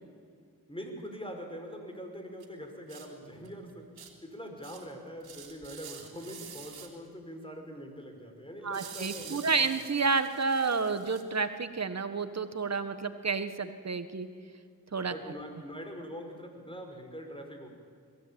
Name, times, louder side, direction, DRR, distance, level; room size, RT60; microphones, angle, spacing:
voice 1, 0.7-3.9 4.2-9.7 15.0-17.7, equal, 15° left, 4 dB, 5.1 m, -43 dB
sound 1, 2.4-2.5 2.9-3.1 3.5-3.6 4.0-4.1 4.6-4.9 5.2-6.9 8.7-11.2, right 7 dB, 85° right, 2.9 m, -47 dB
voice 2, 8.6-14.3 14.9-15.1, right 4 dB, 45° right, 10 dB, 1.6 m, -30 dB
21.5 x 16.5 x 8.9 m, 2.2 s
cardioid pair, 55°, 37 cm